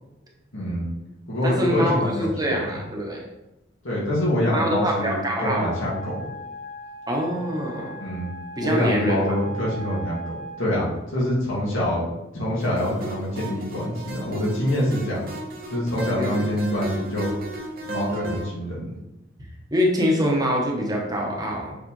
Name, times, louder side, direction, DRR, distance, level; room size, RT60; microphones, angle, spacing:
voice 1, 0.5-0.9 1.3-2.6 3.8-6.3 8.0-8.3 8.6-12.1 12.3-15.3 15.7-17.3 17.8-19.0, left 1 dB, 85° left, -5 dB, 2.2 m, -25 dB
voice 2, 1.4-3.3 4.5-5.7 7.1-8.0 8.6-9.4 16.1-16.5 19.7-21.8, equal, 20° right, -1 dB, 1.1 m, -24 dB
Wind instrument woodwind instrument, 5.3-10.7, equal, 60° left, 1.0 m, -38 dB
sound 1, 12.6-18.5, right 1 dB, 50° right, 1.1 m, -35 dB
7.5 x 4.1 x 3.2 m, 0.94 s
head